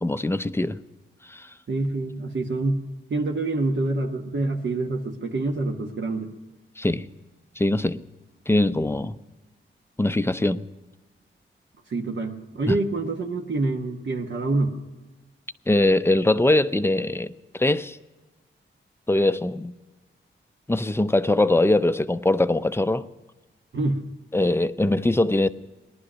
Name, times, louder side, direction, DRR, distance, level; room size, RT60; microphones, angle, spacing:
voice 1, 0.0-0.8 1.3-1.5 6.8-7.1 7.6-8.0 8.5-9.2 10.0-10.7 12.7-12.8 15.7-18.0 19.1-19.7 20.7-23.0 24.3-25.5, left 2 dB, 10° left, 0.5 m, -22 dB
voice 2, 1.7-2.8 3.1-6.3 11.9-14.7 23.7-24.0, right 2 dB, 60° right, 1.3 m, -26 dB
18.5 x 11.5 x 6.2 m
wide cardioid pair, 85°, 21 cm